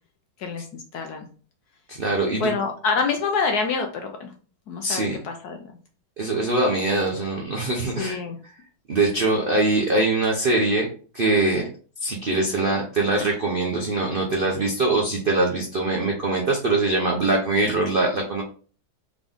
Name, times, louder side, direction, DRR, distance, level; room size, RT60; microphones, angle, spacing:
voice 1, 0.4-1.3 2.4-4.3 4.7-5.7 8.0-8.4, left 5 dB, 65° left, 4 dB, 1.0 m, -27 dB
voice 2, 1.9-2.5 4.8-5.2 6.2-8.2 8.9-10.9 11.1-11.7 12.0-18.4, right 2 dB, 75° right, 0 dB, 0.5 m, -22 dB
3.8 x 3.6 x 3.5 m, 0.40 s
omnidirectional pair, 2.1 m